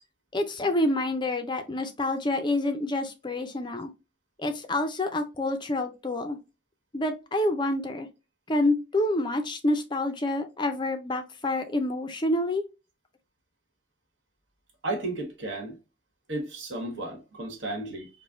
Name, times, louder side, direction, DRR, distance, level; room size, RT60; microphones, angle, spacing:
voice 1, 0.3-3.9 4.4-6.4 6.9-8.1 8.5-12.6, left 1 dB, 25° left, 0.5 m, -27 dB
voice 2, 14.8-15.8 16.3-18.1, right 2 dB, 65° right, 1.5 m, -33 dB
5.1 x 2.2 x 2.5 m
head